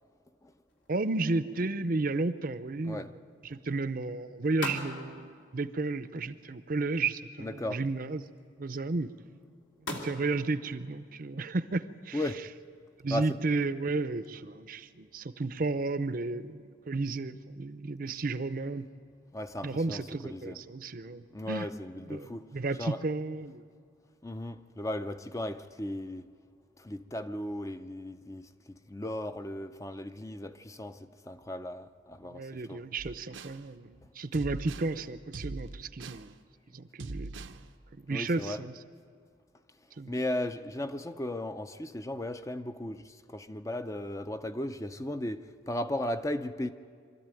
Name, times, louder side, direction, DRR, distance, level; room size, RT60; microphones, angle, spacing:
sound 1, 0.7-13.4, left 2 dB, 80° left, 2.7 m, -47 dB
voice 1, 0.9-3.1 3.4-8.2 8.6-9.1 9.8-12.2 13.0-18.8 19.6-21.7 22.1-23.6 32.2-36.4 36.7-37.6 37.9-38.7 40.0-40.2, right 3 dB, 50° right, 0.6 m, -33 dB
voice 2, 7.4-7.8 12.1-12.5 13.1-13.4 19.3-20.6 21.3-22.5 22.8-23.0 24.2-26.3 26.8-32.8 38.1-38.6 40.1-46.7, left 1 dB, 15° left, 0.5 m, -36 dB
sound 2, 33.0-33.6 34.3-34.9 35.3-36.3 37.0-37.6, right 2 dB, 85° right, 0.8 m, -41 dB
24.5 x 13.5 x 9.0 m
head